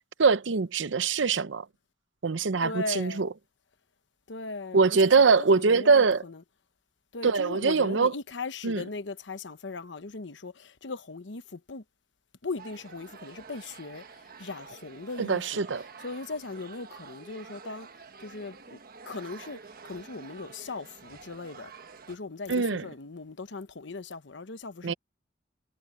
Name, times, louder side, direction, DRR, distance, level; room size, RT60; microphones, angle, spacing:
voice 1, 0.2-1.6 2.2-3.3 4.7-6.2 7.2-8.1 8.6-8.8 15.2-15.8 22.5-22.8 24.8-24.9, right 4 dB, 85° right, 0.7 m, -23 dB
voice 2, 2.6-3.2 4.3-6.4 7.1-11.8 12.4-17.9 18.2-18.8 19.1-21.7 22.1-24.9, left 3 dB, 75° left, 1.0 m, -39 dB
sound 1, 12.6-22.2, right 5 dB, 55° right, 1.2 m, -49 dB
head